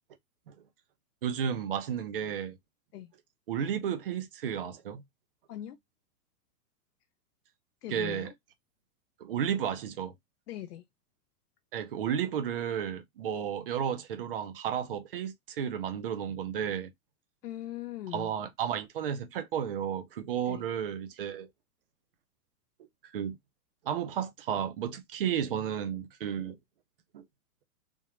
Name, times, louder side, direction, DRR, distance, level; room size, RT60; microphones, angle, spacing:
voice 1, 1.2-2.6 3.5-5.0 7.9-8.3 9.2-10.1 11.7-16.9 18.1-21.5 23.1-23.3 23.8-26.6 27.1-27.2, right 8 dB, 40° right, 0.5 m, -33 dB
voice 2, 7.8-8.3 10.5-10.8 17.4-18.3 20.5-20.6, left 12 dB, 90° left, 0.8 m, -40 dB
3.6 x 2.8 x 3.0 m
supercardioid pair, 175°, 45 cm